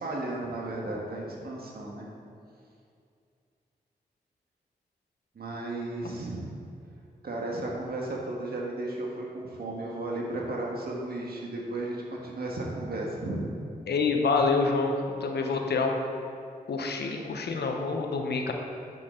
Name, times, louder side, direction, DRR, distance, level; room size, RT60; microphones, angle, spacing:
voice 1, 0.0-2.1 5.4-6.6 7.2-13.5, right 2 dB, 65° right, -2 dB, 1.6 m, -34 dB
voice 2, 13.9-15.0 15.2-15.9 16.7-18.5, left 4 dB, 80° left, 3 dB, 0.9 m, -27 dB
8.6 x 6.5 x 3.8 m, 2.4 s
cardioid pair, 55°, 17 cm